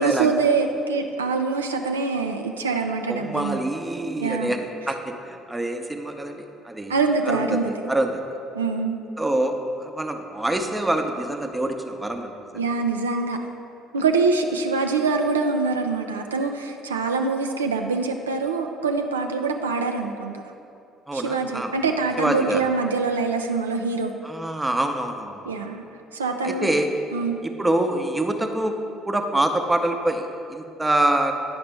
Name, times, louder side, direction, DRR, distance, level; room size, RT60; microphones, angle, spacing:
voice 1, 0.0-3.6 4.2-4.6 4.8-4.9 6.9-7.7 8.5-9.0 12.5-13.4 13.9-20.4 21.1-24.1 25.4-25.8 26.1-26.7 27.1-27.4, right 4 dB, 80° right, 4 dB, 0.3 m, -24 dB
voice 2, 3.1-4.6 4.9-7.0 7.3-7.6 7.9-8.2 9.2-12.3 21.1-21.7 22.2-22.6 24.2-25.5 26.4-26.9 27.4-28.8 29.1-31.3, right 1 dB, 15° right, 5 dB, 0.7 m, -25 dB
9.5 x 5.8 x 3.3 m, 2.6 s
figure-of-eight pair, 50°, 0 cm